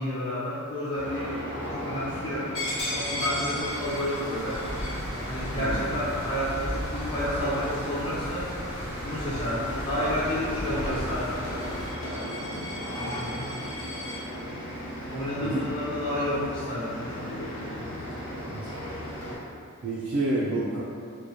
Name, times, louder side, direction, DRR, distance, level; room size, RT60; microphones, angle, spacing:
voice 1, 0.0-1.4 1.7-2.5 2.9-4.6 5.3-8.5 9.0-11.4 13.0-13.5 15.1-17.9, left 1 dB, 25° left, -9 dB, 0.4 m, -31 dB
sound 1, 0.9-19.4, equal, 70° left, 0.6 m, -36 dB
Coin (dropping), 2.5-7.9 8.4-8.7 9.1-14.2, left 1 dB, 45° left, 1.0 m, -37 dB
sound 2, 3.6-11.9, equal, 85° left, 1.0 m, -36 dB
voice 2, 5.6-5.9 15.4-15.6 18.5-18.8 19.8-20.8, right 2 dB, 55° right, -7 dB, 0.3 m, -29 dB
2.1 x 2.1 x 2.7 m, 2.3 s
head